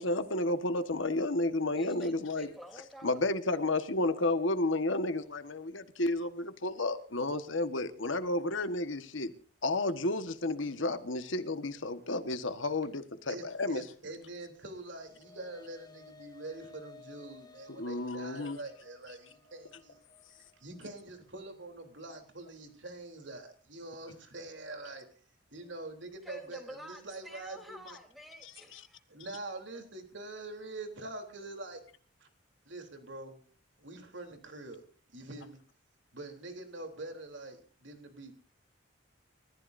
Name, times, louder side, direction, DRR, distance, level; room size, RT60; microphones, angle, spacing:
voice 1, 0.0-2.5 3.0-9.3 9.6-13.8 17.8-18.6 28.4-28.8, left 2 dB, 80° left, 1.5 m, -32 dB
voice 2, 1.7-3.2 26.2-29.0, equal, ahead, 3.5 m, -49 dB
voice 3, 13.3-20.0 20.5-25.1 25.5-28.0 29.1-31.8 32.2-32.3 32.7-33.4 33.8-34.8 35.1-35.6 36.1-38.3, right 2 dB, 70° right, 3.5 m, -45 dB
sound 1, 14.6-23.1, left 4 dB, 20° left, 1.9 m, -57 dB
30.0 x 15.0 x 2.7 m
head